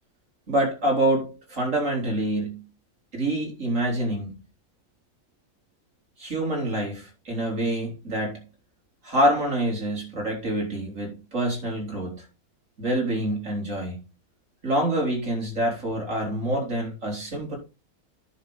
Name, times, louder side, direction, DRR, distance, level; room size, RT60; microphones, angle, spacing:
voice 1, 0.5-2.6 3.1-4.3 6.2-8.4 9.0-12.2 12.8-14.0 14.6-17.6, right 1 dB, 55° right, 3.9 m, -26 dB
10.5 x 6.4 x 3.9 m
omnidirectional pair, 1.6 m